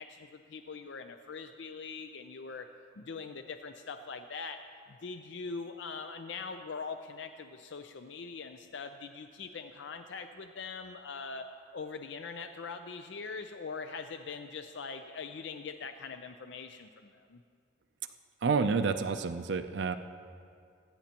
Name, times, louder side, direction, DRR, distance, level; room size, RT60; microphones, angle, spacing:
voice 1, 0.0-2.7 2.9-4.6 4.9-17.4, left 4 dB, 65° left, 7 dB, 0.5 m, -42 dB
voice 2, 18.4-20.0, right 5 dB, 60° right, 9 dB, 0.4 m, -29 dB
25.5 x 9.5 x 2.9 m, 2.3 s
head